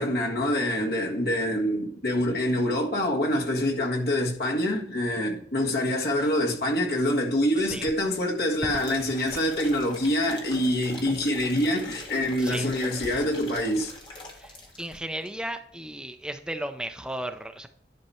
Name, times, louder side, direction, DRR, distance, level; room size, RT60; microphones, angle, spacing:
voice 1, 0.0-13.9, left 1 dB, 60° left, 1.7 m, -26 dB
voice 2, 7.6-7.9 8.6-8.9 9.3-9.4 12.4-12.7 13.0-13.2 14.3-17.7, right 1 dB, 5° right, 0.4 m, -35 dB
sound 1, 8.7-15.0 15.3-15.4, left 1 dB, 25° left, 1.7 m, -43 dB
11.0 x 5.8 x 4.3 m
head